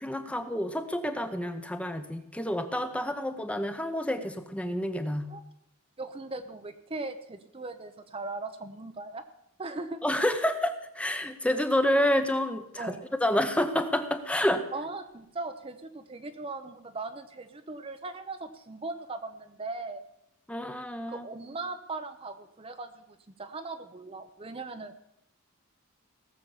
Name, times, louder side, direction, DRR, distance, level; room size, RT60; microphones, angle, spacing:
voice 1, 0.0-5.3 10.0-14.6 20.5-21.3, left 1 dB, 5° left, 8 dB, 0.8 m, -29 dB
voice 2, 6.0-9.2 9.6-10.0 12.8-13.0 14.7-20.0 21.1-23.0 23.4-25.0, right 3 dB, 25° right, 8 dB, 0.7 m, -39 dB
17.5 x 7.0 x 7.2 m, 0.79 s
head